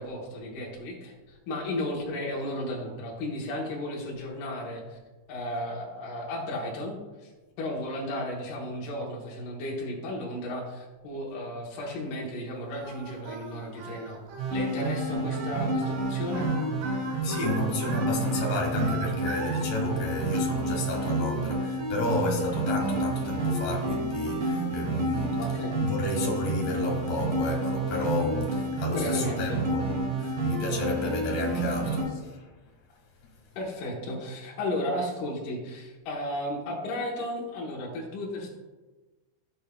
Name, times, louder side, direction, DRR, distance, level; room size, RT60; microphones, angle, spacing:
voice 1, 0.0-5.0 5.3-7.3 7.6-14.2 14.5-16.5 25.4-25.8 28.8-29.6 33.6-38.5, left 1 dB, 80° left, 1.8 m, -34 dB
Singing, 12.7-19.6, right 4 dB, 80° right, 3.7 m, -40 dB
sound 1, 14.4-32.0, right 2 dB, 55° right, 3.2 m, -29 dB
voice 2, 17.2-32.5, left 2 dB, 55° left, 2.6 m, -32 dB
14.5 x 7.0 x 2.3 m
omnidirectional pair, 5.7 m